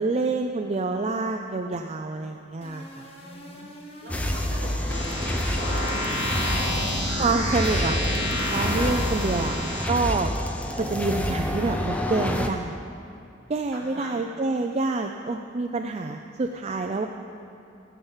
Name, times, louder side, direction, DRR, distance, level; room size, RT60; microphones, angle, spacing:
voice 1, 0.0-3.1 7.2-8.0 8.5-9.6 9.9-10.3 10.8-12.8 13.5-17.1, right 3 dB, 35° right, 4 dB, 0.4 m, -27 dB
sound 1, 2.6-10.0, left 1 dB, 30° left, 1.2 m, -45 dB
voice 2, 3.1-3.7 4.0-7.3 13.7-14.2, equal, 60° right, -4 dB, 3.2 m, -43 dB
sound 2, 4.1-12.5, left 1 dB, 5° left, 0.6 m, -28 dB
sound 3, 4.9-9.9, left 1 dB, 65° left, 2.5 m, -28 dB
14.5 x 5.6 x 7.2 m, 2.7 s
head